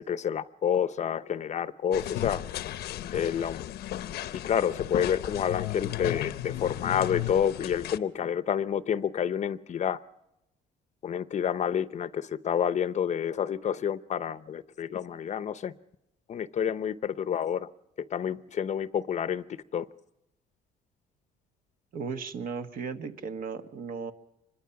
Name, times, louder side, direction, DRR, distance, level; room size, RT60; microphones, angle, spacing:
voice 1, 0.0-2.4 3.1-3.6 4.3-10.0 11.0-15.7 16.3-17.7 18.1-19.4 19.7-19.9, left 8 dB, 45° left, 0.7 m, -29 dB
sound 1, 1.9-8.0, left 13 dB, 70° left, 0.8 m, -35 dB
voice 2, 21.9-24.1, right 5 dB, 60° right, 1.6 m, -36 dB
25.5 x 21.5 x 5.9 m
cardioid pair, 110°, 17 cm